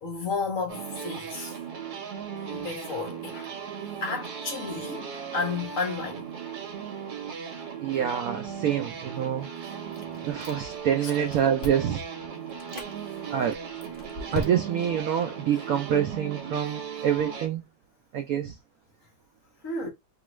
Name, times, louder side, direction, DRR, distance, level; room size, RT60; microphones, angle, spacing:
voice 1, 0.0-1.6 2.5-3.5 4.0-6.3 11.0-11.1 13.0-13.3 15.5-15.6 19.6-19.9, left 4 dB, 55° left, 1.0 m, -33 dB
sound 1, 0.7-17.5, right 7 dB, 65° right, 1.3 m, -37 dB
voice 2, 7.8-9.5 10.2-12.0 13.3-13.6 14.3-17.6 18.1-18.6, right 9 dB, 85° right, 0.7 m, -26 dB
Chewing mastication, 9.9-10.9 11.1-12.0 12.5-12.9 13.5-14.9, left 2 dB, 80° left, 0.4 m, -37 dB
2.9 x 2.4 x 3.0 m
omnidirectional pair, 2.0 m